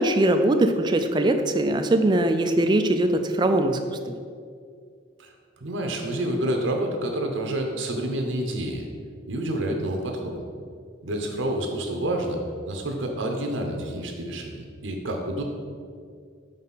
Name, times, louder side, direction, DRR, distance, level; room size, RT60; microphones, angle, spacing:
voice 1, 0.0-4.0, right 1 dB, 25° right, 7 dB, 0.3 m, -21 dB
voice 2, 5.2-8.9 9.3-10.4 11.0-12.4 12.7-15.4, right 1 dB, 75° right, 3 dB, 0.8 m, -28 dB
5.3 x 4.0 x 5.5 m, 2.2 s
head